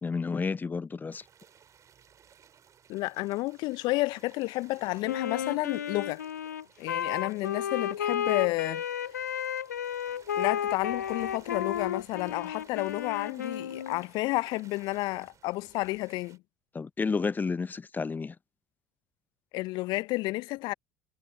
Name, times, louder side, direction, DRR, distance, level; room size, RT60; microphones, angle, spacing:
voice 1, 0.0-1.2 16.7-18.4, left 4 dB, 20° left, 0.7 m, -31 dB
sound 1, 1.1-16.4, right 8 dB, 35° right, 3.3 m, -58 dB
voice 2, 2.9-6.2 6.8-8.8 10.4-16.4 19.5-20.7, left 21 dB, 55° left, 0.7 m, -31 dB
Wind instrument woodwind instrument, 5.0-14.0, left 9 dB, 80° left, 0.4 m, -33 dB
figure-of-eight pair, 65°, 9 cm